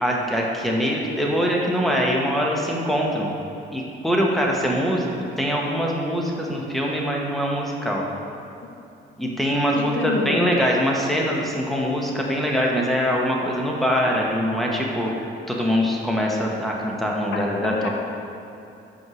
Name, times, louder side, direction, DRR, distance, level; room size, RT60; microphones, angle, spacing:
voice 1, 0.0-3.3 3.7-8.0 9.2-15.1 15.5-17.9, equal, ahead, -2 dB, 1.1 m, -23 dB
voice 2, 9.7-10.5 17.3-17.9, left 4 dB, 65° left, 3 dB, 0.9 m, -29 dB
5.3 x 4.6 x 6.2 m, 2.8 s
cardioid pair, 90°, 20 cm